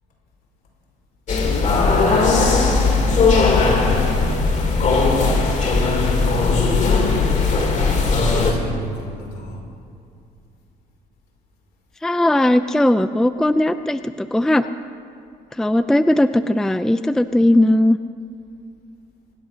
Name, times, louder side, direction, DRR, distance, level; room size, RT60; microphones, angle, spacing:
sound 1, 1.3-8.5, left 3 dB, 45° left, 3.1 m, -18 dB
voice 1, 1.4-4.5 5.5-7.2 7.8-9.6, left 2 dB, 65° left, -1 dB, 4.9 m, -33 dB
voice 2, 12.0-14.7 15.6-18.0, left 1 dB, 5° left, 11 dB, 0.4 m, -18 dB
25.0 x 8.9 x 6.4 m, 2.4 s
cardioid pair, 110°, 17 cm